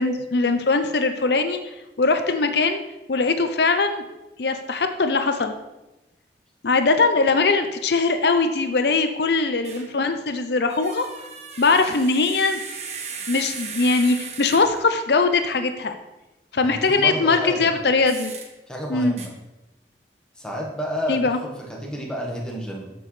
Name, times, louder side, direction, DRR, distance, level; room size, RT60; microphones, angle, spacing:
voice 1, 0.0-1.6 2.0-2.8 3.1-4.0 4.4-5.5 6.6-11.1 11.6-12.6 13.3-15.9 16.5-18.3 18.9-19.1 21.1-21.4, left 3 dB, 70° left, 7 dB, 0.6 m, -21 dB
sound 1, 9.6-9.9 10.7-14.9 18.1-18.5 19.2-19.3, right 5 dB, 40° right, 1.1 m, -37 dB
voice 2, 16.6-17.7 18.7-19.3 20.3-22.9, equal, 5° left, -2 dB, 1.5 m, -30 dB
13.0 x 6.1 x 3.3 m, 1.0 s
head